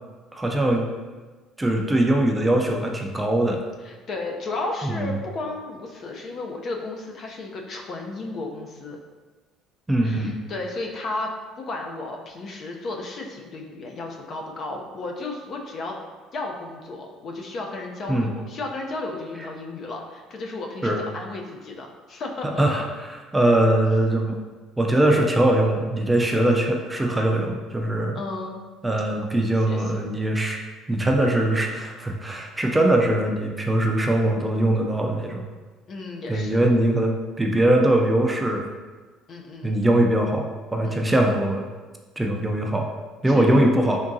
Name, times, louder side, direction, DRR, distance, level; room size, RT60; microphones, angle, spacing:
voice 1, 0.3-0.9 1.6-3.6 4.9-5.1 9.9-10.3 18.1-18.3 20.8-21.0 22.6-22.8 23.3-24.4 24.8-28.2 28.8-30.6 30.9-35.4 36.3-38.7 39.6-40.4 40.7-41.6 42.2-42.9 43.2-44.0, right 1 dB, 10° right, 1 dB, 0.4 m, -21 dB
voice 2, 3.8-9.0 10.0-11.3 11.6-16.0 16.3-22.8 28.1-28.6 29.7-29.9 35.9-36.7 39.3-39.8 40.8-41.3 43.3-43.8, left 2 dB, 50° left, 1 dB, 0.6 m, -33 dB
3.7 x 3.6 x 2.7 m, 1.3 s
cardioid pair, 105°, 0 cm